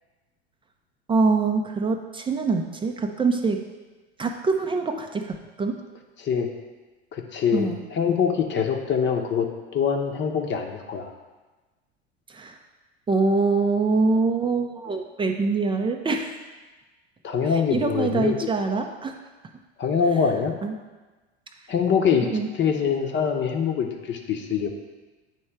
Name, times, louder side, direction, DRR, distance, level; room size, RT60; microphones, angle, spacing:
voice 1, 1.1-3.6 4.2-5.8 7.5-7.8 12.3-12.6 13.1-16.4 17.5-19.2 20.6-20.7 22.3-22.5, right 4 dB, 15° right, 4 dB, 0.5 m, -24 dB
voice 2, 7.1-9.5 9.7-11.1 17.2-18.5 19.8-20.5 21.7-22.3 22.6-24.7, left 7 dB, 35° left, 4 dB, 0.9 m, -24 dB
9.0 x 3.1 x 4.5 m, 1.2 s
figure-of-eight pair, 80°, 34 cm